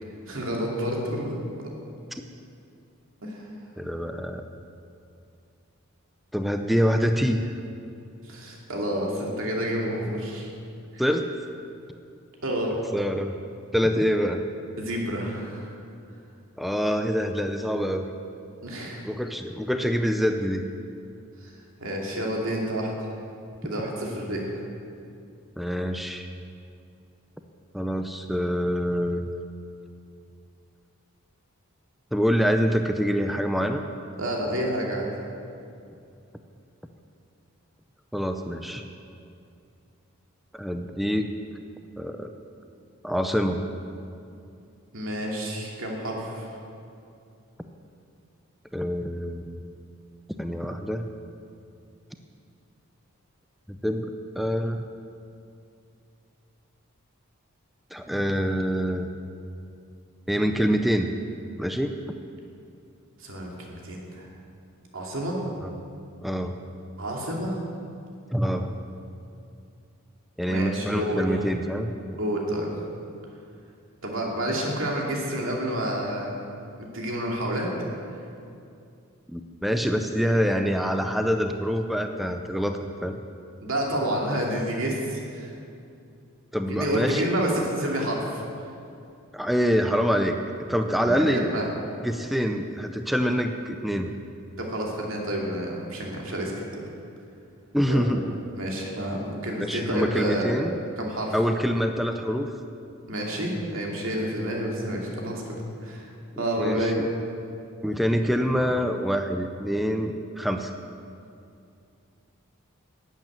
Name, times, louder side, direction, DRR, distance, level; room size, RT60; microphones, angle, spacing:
voice 1, 0.3-1.3 1.6-1.7 3.2-3.4 8.3-10.5 10.9-11.0 12.4-12.8 14.8-15.7 18.6-19.1 21.4-21.5 21.8-23.1 23.6-24.5 34.2-35.1 44.9-46.5 63.2-64.3 64.9-65.4 67.0-67.6 70.4-71.3 72.2-72.7 74.0-76.4 76.8-77.9 83.6-85.5 86.7-88.4 91.0-91.7 94.6-96.5 97.9-98.0 98.5-100.5 101.0-101.3 103.1-105.5 105.8-106.1 106.4-107.0, right 1 dB, 65° right, -1 dB, 2.6 m, -29 dB
voice 2, 3.8-4.4 6.3-7.5 11.0-11.3 12.9-13.4 13.7-14.4 16.6-18.1 19.0-20.7 25.6-26.3 27.7-29.3 32.1-33.8 38.1-38.8 40.5-41.3 42.0-42.3 43.0-43.7 48.7-49.6 50.4-51.1 53.7-54.8 57.9-59.1 60.3-61.1 61.6-61.9 65.6-65.7 66.2-66.6 68.3-68.8 70.4-71.9 79.3-83.2 86.5-87.3 89.3-91.5 92.0-94.1 97.7-98.4 99.6-100.8 101.3-102.5 106.4-107.1 107.8-110.7, equal, ahead, 5 dB, 0.5 m, -25 dB
12.0 x 8.9 x 8.9 m, 2.5 s
head